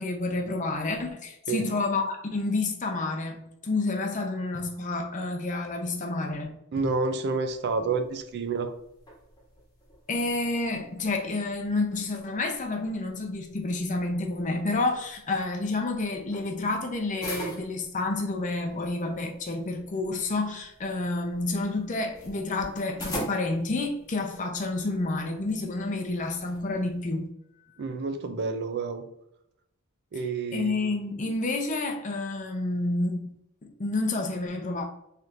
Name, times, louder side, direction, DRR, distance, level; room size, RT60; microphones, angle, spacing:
voice 1, 0.0-6.5 10.1-27.3 30.5-33.3 33.6-34.8, left 2 dB, 35° left, 3 dB, 0.6 m, -29 dB
voice 2, 6.7-8.7 27.8-29.1 30.1-30.8, right 4 dB, 50° right, 8 dB, 0.4 m, -29 dB
sound 1, 7.4-27.1, equal, 20° left, 1.2 m, -45 dB
4.3 x 3.3 x 2.5 m, 0.78 s
head